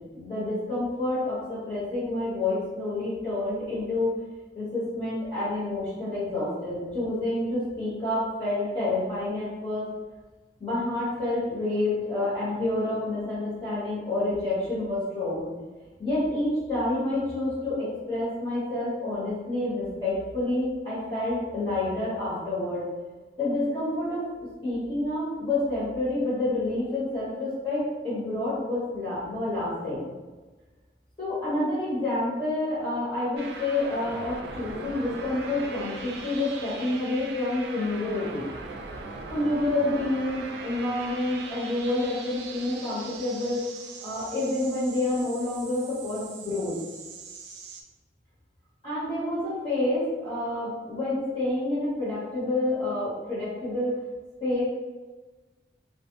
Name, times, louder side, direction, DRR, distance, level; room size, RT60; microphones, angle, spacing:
voice 1, 0.0-4.1 4.5-9.8 10.6-15.5 16.0-22.9 23.4-24.3 24.6-30.1 31.2-38.5 39.3-43.6 44.0-46.7 48.8-54.0 54.4-54.6, left 2 dB, 30° left, -12 dB, 1.1 m, -28 dB
sound 1, 33.4-47.8, right 4 dB, 75° right, 0.3 m, -40 dB
2.3 x 2.1 x 2.9 m, 1.3 s
head